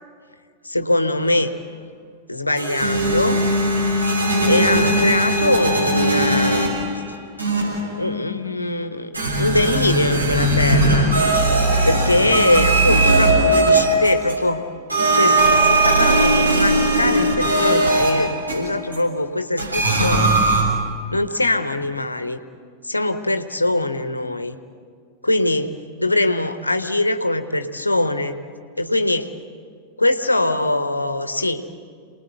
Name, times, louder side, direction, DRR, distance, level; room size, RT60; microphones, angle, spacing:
voice 1, 0.6-1.5 2.3-3.4 4.5-6.8 8.0-11.1 11.8-14.6 15.1-20.4 21.1-22.4 22.8-24.6 25.2-28.4 28.8-29.3 30.0-31.6, left 2 dB, 85° left, 9 dB, 1.1 m, -22 dB
sound 1, 2.6-7.0 7.4-8.0 9.1-14.5 14.9-19.0 19.6-20.6, right 2 dB, 85° right, 6.8 m, -18 dB
28.5 x 20.0 x 8.1 m, 2.1 s
figure-of-eight pair, 90°, 0 cm